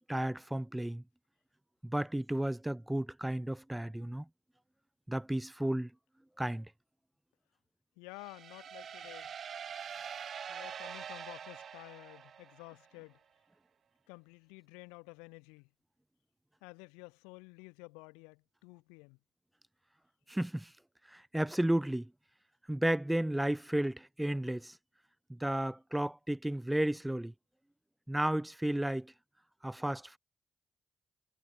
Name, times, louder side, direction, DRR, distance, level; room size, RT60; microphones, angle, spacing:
voice 1, 0.1-1.0 1.8-4.2 5.1-5.9 6.4-6.7 20.3-20.7 21.1-22.1 22.7-24.7 25.3-27.3 28.1-29.1 29.6-30.2, right 1 dB, 10° right, 0.6 m, -33 dB
voice 2, 8.0-9.3 10.5-13.2 14.1-15.7 16.6-19.2, left 32 dB, 90° left, 4.4 m, -52 dB
sound 1, 8.2-12.9, right 8 dB, 65° right, 3.4 m, -45 dB
hypercardioid pair, 40°, 0 cm